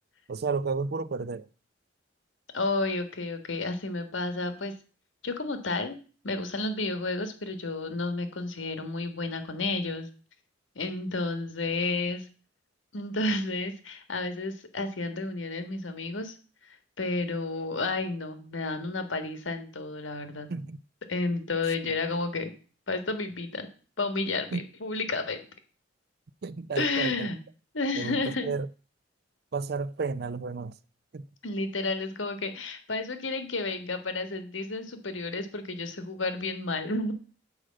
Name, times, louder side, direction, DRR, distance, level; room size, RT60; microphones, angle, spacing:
voice 1, 0.3-1.5 20.5-20.8 21.8-22.0 24.5-24.6 26.4-27.3 28.0-28.7 29.5-30.8 31.1-31.3, right 4 dB, 55° right, 0.5 m, -32 dB
voice 2, 2.5-4.7 5.2-6.0 6.2-10.1 10.7-12.2 12.9-16.3 17.0-20.5 21.1-22.5 22.9-23.7 24.0-25.4 26.7-27.4 27.7-28.5 31.4-37.1, left 3 dB, 90° left, 1.5 m, -31 dB
8.0 x 5.0 x 7.5 m
head